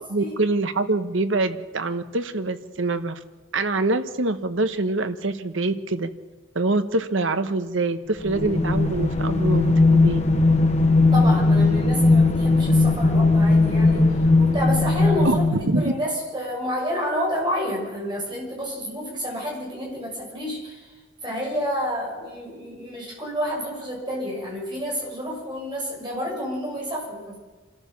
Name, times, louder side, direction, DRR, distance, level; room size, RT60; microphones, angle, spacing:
voice 1, 0.1-3.2 3.5-6.1 6.5-10.2 15.2-15.9, right 2 dB, 70° right, 10 dB, 1.1 m, -25 dB
sound 1, 8.2-15.9, left 3 dB, 35° left, 1.1 m, -18 dB
voice 2, 11.1-15.4 15.8-20.9 21.2-27.4, equal, 20° right, -2 dB, 6.6 m, -29 dB
27.5 x 13.5 x 7.1 m, 1.3 s
head